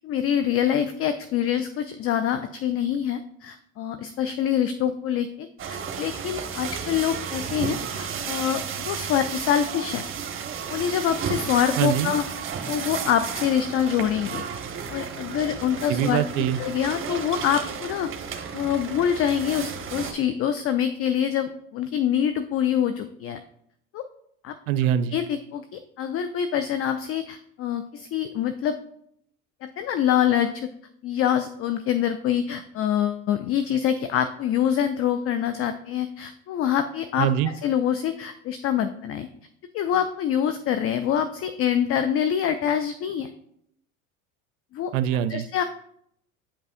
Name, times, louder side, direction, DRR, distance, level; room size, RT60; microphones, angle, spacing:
voice 1, 0.0-10.0 10.7-12.2 12.7-14.4 14.9-16.2 16.6-23.4 23.9-24.0 24.4-24.6 25.1-28.8 29.6-30.7 31.0-39.3 39.7-43.3 44.7-44.9 45.3-45.6, left 9 dB, 35° left, 10 dB, 0.4 m, -25 dB
sound 1, 5.6-20.1, right 7 dB, 30° right, 1.0 m, -33 dB
voice 2, 11.8-12.1 15.9-16.6 24.7-25.2 37.2-37.5 44.9-45.5, right 10 dB, 70° right, 13 dB, 0.5 m, -23 dB
8.6 x 5.3 x 2.5 m, 0.72 s
hypercardioid pair, 75°, 41 cm